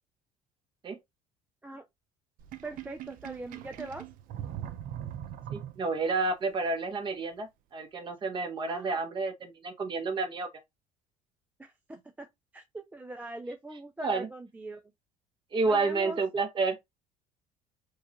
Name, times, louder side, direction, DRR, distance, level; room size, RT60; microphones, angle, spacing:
Sink (filling or washing), 2.4-6.2, right 11 dB, 65° right, 0.6 m, -41 dB
voice 1, 2.6-4.1 8.7-9.0 11.6-14.8 15.6-16.2, right 2 dB, 10° right, 0.4 m, -42 dB
voice 2, 5.5-10.5 14.0-14.3 15.5-16.8, right 3 dB, 30° right, 1.0 m, -30 dB
4.7 x 2.4 x 2.9 m
cardioid pair, 125°, 16 cm